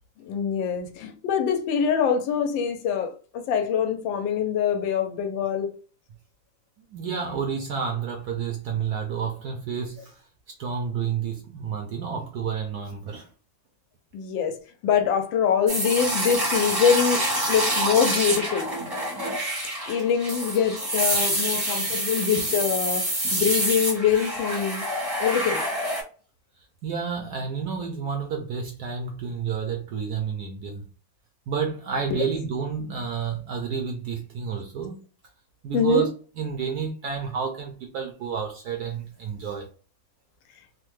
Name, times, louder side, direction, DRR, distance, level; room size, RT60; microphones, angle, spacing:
voice 1, 0.2-5.7 14.1-14.6 14.8-17.2 17.5-18.7 19.9-23.1 23.3-24.8 25.2-25.7 35.7-36.1, left 7 dB, 75° left, 1.2 m, -24 dB
voice 2, 6.9-10.2 10.6-13.3 21.9-22.0 26.6-30.8 31.5-35.0 35.6-36.1 36.3-39.7, right 6 dB, 70° right, 0.9 m, -30 dB
sound 1, 15.7-26.0, right 1 dB, 20° right, 0.7 m, -27 dB
3.3 x 2.1 x 3.1 m
omnidirectional pair, 2.2 m